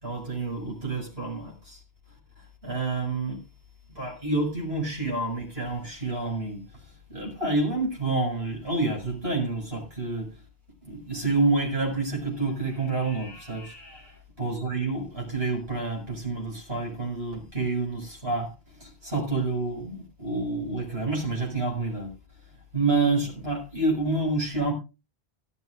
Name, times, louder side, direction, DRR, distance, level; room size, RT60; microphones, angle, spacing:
voice 1, 0.0-1.8 2.4-3.4 3.9-10.4 10.8-13.8 14.4-22.1 22.5-24.7, right 3 dB, 80° right, 6.4 m, -28 dB
sound 1, 9.5-9.7 10.9-11.0 11.8-12.1 12.3-15.1 16.9-17.0 17.5-17.6 18.5-18.8 19.1-19.4 19.7-19.8, left 1 dB, 50° right, 8.3 m, -51 dB
17.5 x 13.0 x 2.5 m
omnidirectional pair, 1.0 m